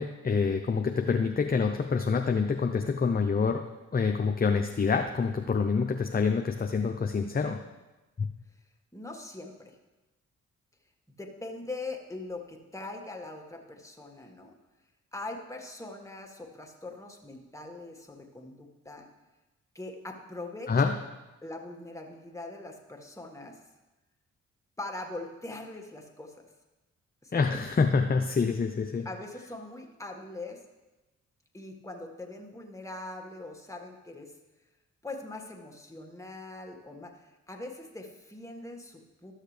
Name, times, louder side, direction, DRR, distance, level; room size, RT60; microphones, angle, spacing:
voice 1, 0.0-3.6 3.9-7.6 20.7-20.9 27.3-29.1, left 5 dB, 25° left, 5 dB, 0.7 m, -26 dB
voice 2, 8.9-9.7 11.2-14.5 15.1-19.1 19.7-21.0 21.4-23.6 24.8-26.4 27.2-27.7 29.0-30.6 31.5-34.3 35.0-39.3, left 2 dB, 10° left, 2 dB, 1.8 m, -42 dB
12.5 x 6.5 x 3.3 m, 1.1 s
hypercardioid pair, 40°, 33 cm